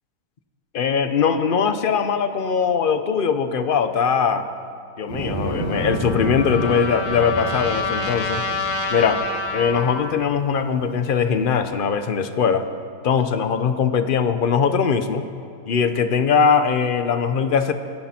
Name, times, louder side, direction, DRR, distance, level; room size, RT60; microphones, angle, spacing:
voice 1, 0.7-4.5 5.0-8.4 8.9-9.2 9.5-12.7 13.0-15.3 15.7-17.7, left 6 dB, 45° left, 9 dB, 0.7 m, -21 dB
sound 1, 5.1-11.7, right 1 dB, 70° right, 5.1 m, -31 dB
Trumpet, 5.4-10.1, left 3 dB, 20° left, 1.1 m, -28 dB
26.5 x 10.5 x 4.4 m, 2.5 s
omnidirectional pair, 1.7 m